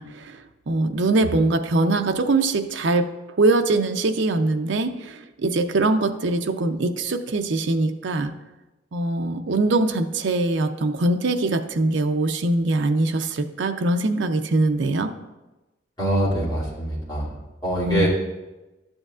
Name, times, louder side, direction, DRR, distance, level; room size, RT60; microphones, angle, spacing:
voice 1, 0.0-3.1 3.4-8.3 8.9-15.1 17.8-18.1, right 2 dB, 70° right, 7 dB, 0.5 m, -22 dB
voice 2, 16.0-17.3 17.6-18.1, right 1 dB, 20° left, -8 dB, 2.6 m, -24 dB
12.0 x 7.8 x 2.4 m, 1.1 s
head